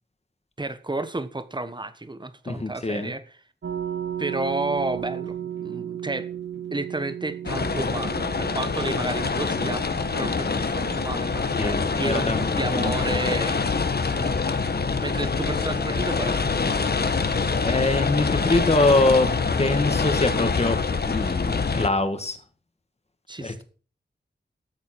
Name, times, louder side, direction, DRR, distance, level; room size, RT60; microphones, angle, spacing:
voice 1, 0.6-3.2 4.2-5.4 5.6-6.3 6.7-14.4 14.7-16.4 23.3-23.6, right 2 dB, 25° right, 1.3 m, -32 dB
voice 2, 2.5-3.1 11.6-12.5 12.8-13.4 17.6-19.3 19.6-20.8 21.1-22.4 23.4-23.6, left 2 dB, 35° left, 2.0 m, -24 dB
sound 1, 3.6-17.7, right 9 dB, 75° right, 1.2 m, -37 dB
sound 2, 7.4-21.9, left 4 dB, 60° left, 1.3 m, -25 dB
13.5 x 8.0 x 6.1 m
wide cardioid pair, 90°, 19 cm